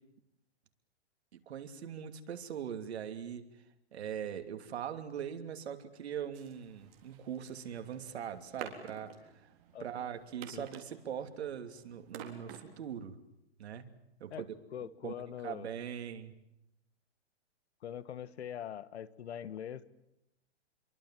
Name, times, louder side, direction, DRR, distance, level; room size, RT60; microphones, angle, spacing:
voice 1, 1.3-3.4 3.9-9.1 9.4-9.5 9.8-13.1 13.6-13.9 14.2-14.3 15.0-16.3, right 8 dB, 65° right, 8 dB, 2.9 m, -41 dB
sound 1, 6.3-13.0, right 9 dB, 30° right, 3.8 m, -51 dB
voice 2, 14.7-15.7 17.8-19.9, left 9 dB, 65° left, 17 dB, 1.5 m, -42 dB
27.5 x 23.5 x 7.6 m, 0.83 s
hypercardioid pair, 170°, 35 cm